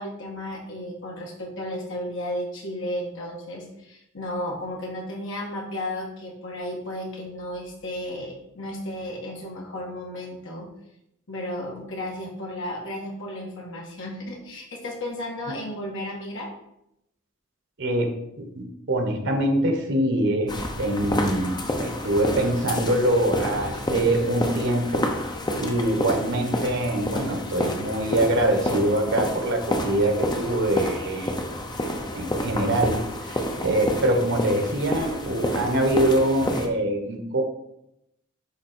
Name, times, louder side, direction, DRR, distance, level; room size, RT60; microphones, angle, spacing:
voice 1, 0.0-10.7 11.3-16.5, left 1 dB, 65° left, -2 dB, 1.7 m, -33 dB
voice 2, 17.8-18.1 18.4-25.1 25.5-31.5 32.1-33.0 33.2-37.4, right 1 dB, 60° right, 3 dB, 1.4 m, -24 dB
sound 1, 20.5-36.7, left 1 dB, 20° left, 0.8 m, -29 dB
10.5 x 3.7 x 4.5 m, 0.81 s
head